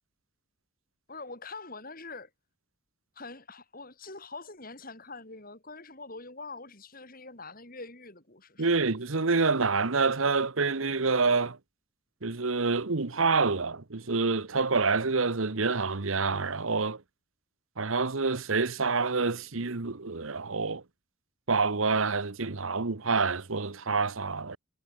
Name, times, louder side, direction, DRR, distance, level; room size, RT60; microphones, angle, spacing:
voice 1, 1.1-2.3 3.2-8.7, left 3 dB, 45° left, 6.9 m, -44 dB
voice 2, 8.6-11.6 12.2-17.0 17.8-20.8 21.5-24.6, right 4 dB, 75° right, 1.2 m, -27 dB
head